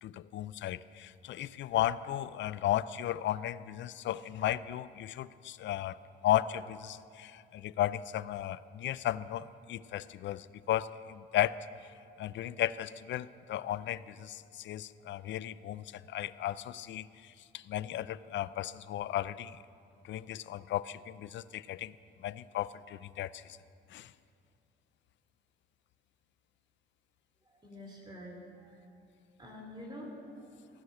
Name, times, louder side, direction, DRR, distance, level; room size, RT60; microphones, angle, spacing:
voice 1, 0.0-6.0 6.2-11.9 12.2-19.6 20.0-21.9 22.2-23.6 23.9-24.1, left 12 dB, 65° left, 17 dB, 0.4 m, -35 dB
voice 2, 27.6-28.7 29.4-30.5, left 1 dB, 20° right, -1 dB, 2.8 m, -47 dB
16.0 x 6.4 x 9.4 m, 2.4 s
cardioid pair, 90°, 20 cm